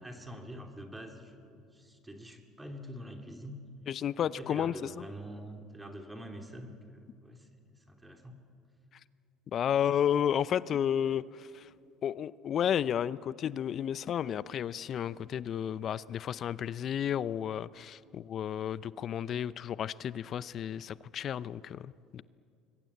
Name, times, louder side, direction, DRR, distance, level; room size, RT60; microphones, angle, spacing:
voice 1, 0.0-3.6 4.4-8.3, equal, 10° right, 4 dB, 2.9 m, -46 dB
voice 2, 3.9-5.1 9.5-11.7 12.0-22.2, left 9 dB, 50° left, 19 dB, 0.6 m, -32 dB
25.0 x 22.0 x 8.5 m, 2.5 s
hypercardioid pair, 75°, 0 cm